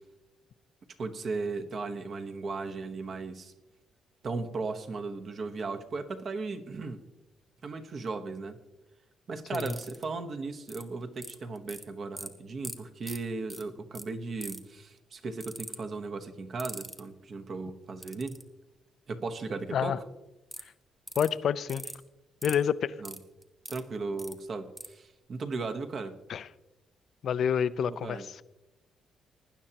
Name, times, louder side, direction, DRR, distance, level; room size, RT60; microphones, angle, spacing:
voice 1, 1.0-3.5 4.2-7.0 7.6-8.6 9.3-18.3 19.1-20.0 23.0-23.2 23.7-26.2 27.8-28.3, right 3 dB, 50° right, 1.1 m, -36 dB
sound 1, 9.5-10.0 10.7-10.8 11.2-11.8 12.2-12.3 12.6-12.8 13.0-13.2 13.5-13.6 13.9-14.0 14.4-14.7 15.4-15.8 16.6-17.0 18.0-18.4 20.5-20.6 21.1-21.3 21.7-22.0 22.4-22.6 23.0-23.8 24.2-24.3 24.8-24.9, right 1 dB, 15° right, 1.3 m, -40 dB
voice 2, 21.2-21.9 22.4-22.9 26.3-26.5 27.2-28.4, left 8 dB, 60° left, 0.4 m, -28 dB
19.0 x 9.9 x 2.9 m
cardioid pair, 90°, 0 cm